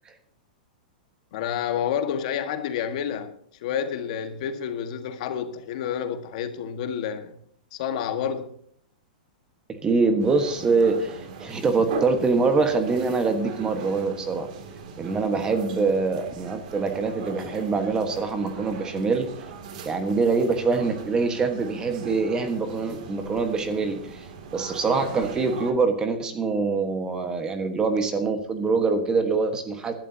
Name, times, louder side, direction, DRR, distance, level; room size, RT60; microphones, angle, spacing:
voice 1, 1.3-3.3 3.6-7.3 7.7-8.5, left 8 dB, 50° left, 1.6 m, -29 dB
voice 2, 9.7-14.5 15.0-19.3 19.8-24.3 24.5-29.9, right 4 dB, 15° right, 1.4 m, -24 dB
sound 1, 10.2-25.7, right 6 dB, 55° right, 2.6 m, -39 dB
19.5 x 12.0 x 2.8 m
hypercardioid pair, 155°, 5 cm